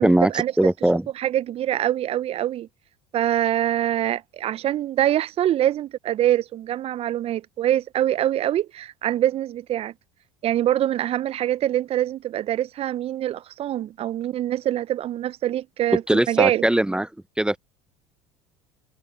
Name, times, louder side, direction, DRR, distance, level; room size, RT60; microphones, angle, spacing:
voice 1, 0.0-0.5 1.2-2.7 3.1-9.9 10.4-16.6, right 12 dB, 45° right, 0.6 m, -24 dB
voice 2, 0.6-1.1 16.1-17.1 17.4-17.6, right 1 dB, 5° right, 0.7 m, -20 dB
hypercardioid pair, 80°, 14 cm